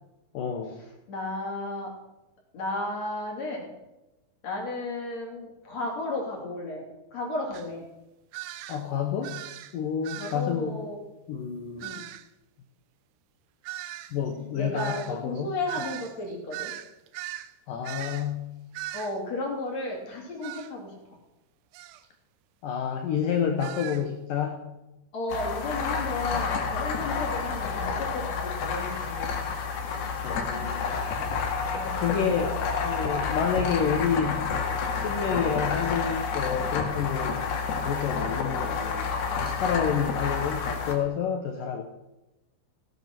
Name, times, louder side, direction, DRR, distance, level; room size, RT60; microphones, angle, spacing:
voice 1, 0.3-0.8 8.7-9.4 9.7-10.8 11.3-12.0 14.1-15.5 17.7-18.5 22.6-24.6 30.2-31.0 31.9-34.5 35.0-37.5 37.8-39.1 39.4-41.8, left 7 dB, 90° left, 4 dB, 1.9 m, -29 dB
voice 2, 1.1-1.9 2.5-3.7 4.4-6.8 7.1-7.9 10.2-11.0 11.8-12.1 14.5-16.7 18.9-20.9 25.1-29.4 31.7-32.2, left 2 dB, 40° left, -1 dB, 3.3 m, -33 dB
sound 1, 7.5-7.7 8.3-8.9 9.2-9.8 10.0-10.4 11.8-12.3 13.6-17.5 17.8-18.3 18.7-19.2 20.4-20.7 21.7-22.0 23.6-24.0, right 14 dB, 90° right, 3.4 m, -39 dB
sound 2, 25.3-40.9, left 5 dB, 60° left, 3.4 m, -29 dB
16.5 x 10.0 x 6.0 m, 0.98 s
omnidirectional pair, 5.7 m